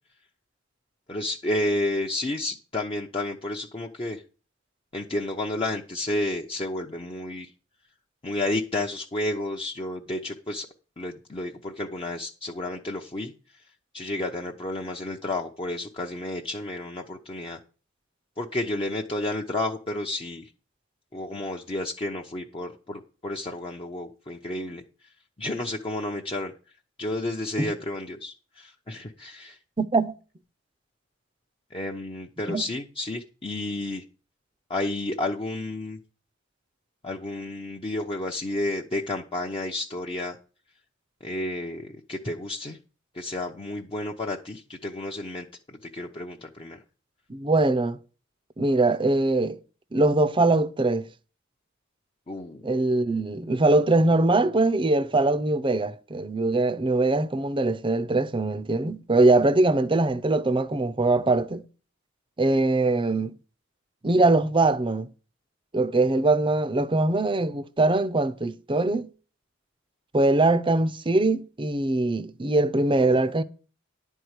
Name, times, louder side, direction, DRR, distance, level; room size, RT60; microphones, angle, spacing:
voice 1, 1.1-4.2 4.9-7.5 8.2-10.7 11.0-13.3 13.9-17.6 18.4-20.5 21.1-24.8 25.4-26.5 27.0-29.6 31.7-34.0 34.7-36.0 37.0-40.4 41.2-42.8 43.1-45.5 45.9-46.8 52.3-52.6 73.0-73.2, left 1 dB, 25° left, 0.8 m, -31 dB
voice 2, 29.8-30.1 32.5-32.6 47.3-48.0 48.6-49.6 49.9-51.1 52.6-61.6 62.4-63.3 64.0-65.1 65.7-69.1 70.1-73.4, right 2 dB, 25° right, 0.6 m, -22 dB
11.0 x 4.6 x 8.1 m
head